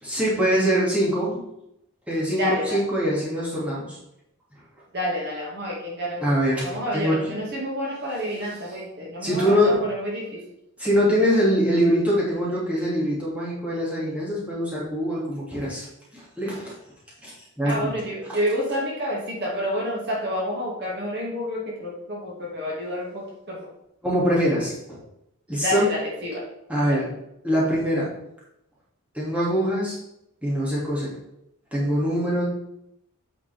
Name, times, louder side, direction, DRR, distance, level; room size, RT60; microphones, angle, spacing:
voice 1, 0.0-1.4 2.1-4.0 6.2-7.4 9.2-9.9 10.8-15.9 16.1-16.7 17.2-17.8 18.3-18.4 24.0-25.0 25.5-25.9 26.7-27.1 27.4-28.1 29.1-29.9 30.4-31.2 31.7-32.4, equal, 5° right, -7 dB, 2.4 m, -23 dB
voice 2, 2.4-2.8 4.9-6.4 6.6-10.4 17.6-23.7 25.6-26.4 26.8-27.0, equal, 50° right, -3 dB, 2.2 m, -29 dB
8.6 x 5.7 x 3.5 m, 0.81 s
head